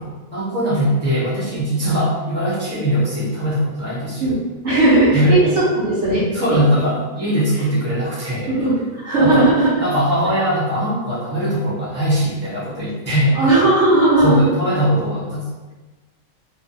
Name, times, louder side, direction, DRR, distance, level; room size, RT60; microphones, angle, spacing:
voice 1, 0.3-4.3 5.1-5.4 6.3-8.5 9.2-9.5 9.8-13.5 14.2-15.4, equal, 10° left, -11 dB, 0.5 m, -20 dB
voice 2, 4.6-5.4 5.7-6.2 8.5-9.7 13.3-14.4, right 2 dB, 60° right, -9 dB, 0.9 m, -16 dB
2.5 x 2.2 x 2.6 m, 1.2 s
omnidirectional pair, 1.5 m